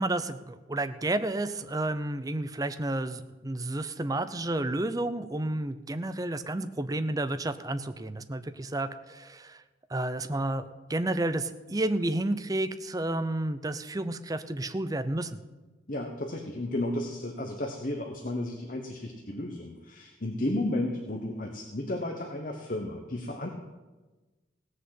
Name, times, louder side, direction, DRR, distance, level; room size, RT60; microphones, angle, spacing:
voice 1, 0.0-9.6 9.9-10.6 10.9-15.4, right 1 dB, 20° right, 10 dB, 0.5 m, -31 dB
voice 2, 15.9-23.5, left 1 dB, 45° left, 3 dB, 1.1 m, -33 dB
16.5 x 6.5 x 7.7 m, 1.2 s
head